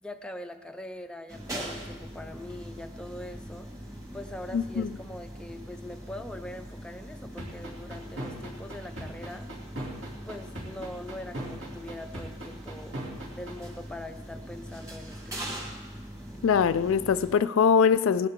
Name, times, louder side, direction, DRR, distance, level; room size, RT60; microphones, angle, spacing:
voice 1, 0.0-3.7 4.1-9.5 10.3-13.0 13.3-15.7, left 1 dB, 5° left, 5 dB, 0.5 m, -42 dB
sound 1, 1.3-17.3, equal, 15° right, 2.0 m, -42 dB
voice 2, 4.5-4.9 16.4-18.3, left 6 dB, 60° left, 13 dB, 0.3 m, -22 dB
sound 2, 7.4-13.5, right 1 dB, 55° right, 2.9 m, -37 dB
18.5 x 11.0 x 3.7 m, 1.2 s
head